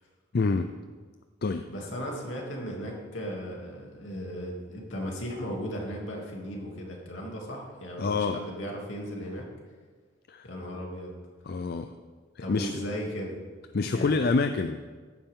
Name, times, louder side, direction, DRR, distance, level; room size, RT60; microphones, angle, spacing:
voice 1, 0.3-0.7 1.4-1.7 8.0-8.4 10.3-10.5 11.5-11.9 12.4-12.7 13.7-14.9, left 4 dB, 50° left, 8 dB, 0.5 m, -27 dB
voice 2, 1.7-9.4 10.4-11.1 12.4-13.4 13.9-14.1, equal, 70° left, -1 dB, 2.8 m, -36 dB
14.5 x 11.5 x 3.7 m, 1.5 s
head